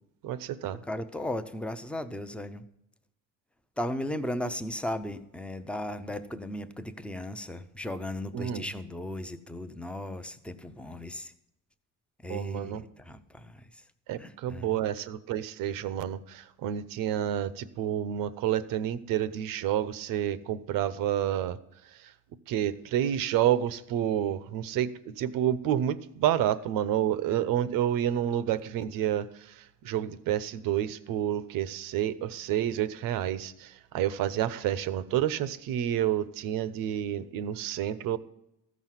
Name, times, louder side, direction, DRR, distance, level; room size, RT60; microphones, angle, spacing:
voice 1, 0.2-0.8 8.3-8.7 12.3-12.8 14.1-21.6 21.8-22.1 22.5-38.2, right 11 dB, 85° right, 15 dB, 0.8 m, -29 dB
voice 2, 0.9-2.6 3.8-11.3 12.2-13.6 14.2-14.7, left 1 dB, 5° left, 10 dB, 0.5 m, -36 dB
14.5 x 6.2 x 7.4 m, 0.79 s
cardioid pair, 165°, 33 cm